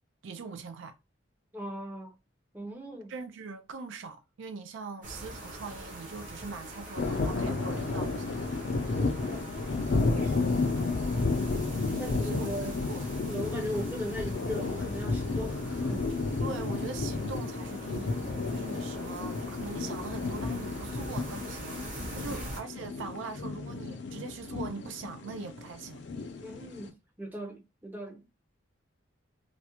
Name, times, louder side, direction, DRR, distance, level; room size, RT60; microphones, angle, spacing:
voice 1, 0.2-1.0 3.1-8.5 11.9-13.1 13.6-13.8 16.4-26.0, right 4 dB, 75° right, 0.4 m, -42 dB
voice 2, 1.5-2.1 2.5-3.1 8.9-9.4 10.1-10.5 12.0-12.7 13.3-16.1 22.2-22.3 26.4-28.3, equal, 10° right, 0.5 m, -38 dB
sound 1, 5.0-22.6, right 1 dB, 40° right, 0.8 m, -44 dB
sound 2, 7.0-26.9, left 3 dB, 60° left, 0.5 m, -32 dB
2.4 x 2.1 x 2.9 m
head